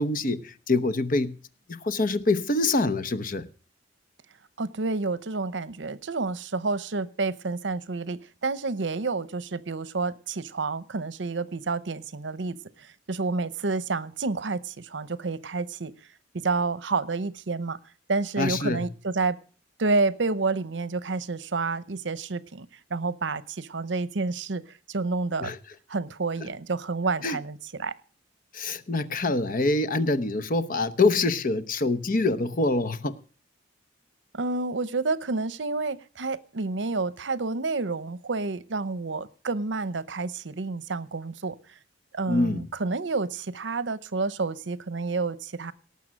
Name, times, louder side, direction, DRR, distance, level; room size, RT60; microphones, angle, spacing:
voice 1, 0.0-1.4 1.7-3.5 18.4-18.9 25.4-25.6 27.2-27.4 28.5-33.2 42.3-42.7, left 2 dB, 50° left, 14 dB, 0.9 m, -25 dB
voice 2, 4.6-12.6 13.1-15.9 16.3-17.8 18.1-19.4 19.8-24.6 24.9-25.5 25.9-27.9 34.3-41.5 42.1-45.7, right 3 dB, 70° right, 16 dB, 0.8 m, -29 dB
18.5 x 7.1 x 6.3 m, 0.40 s
head